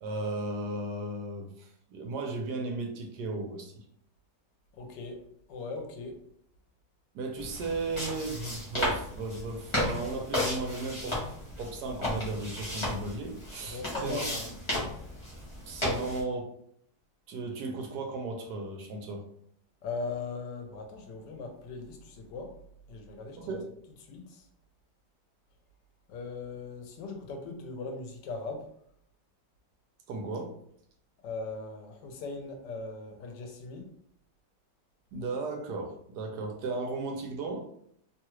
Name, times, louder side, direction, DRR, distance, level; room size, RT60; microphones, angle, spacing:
voice 1, 0.0-3.8 7.1-11.2 11.6-14.3 15.7-16.5 17.3-19.2 23.4-23.6 30.1-30.6 35.1-37.6, right 3 dB, 75° right, 2 dB, 1.1 m, -35 dB
voice 2, 4.8-5.2 5.5-6.1 13.7-14.5 19.8-22.5 22.9-23.4 24.1-24.4 26.1-28.7 31.2-33.9, left 3 dB, 80° left, 3 dB, 1.2 m, -39 dB
sound 1, 7.4-16.2, left 1 dB, 25° left, 0.7 m, -34 dB
3.1 x 2.3 x 3.0 m, 0.67 s
omnidirectional pair, 1.9 m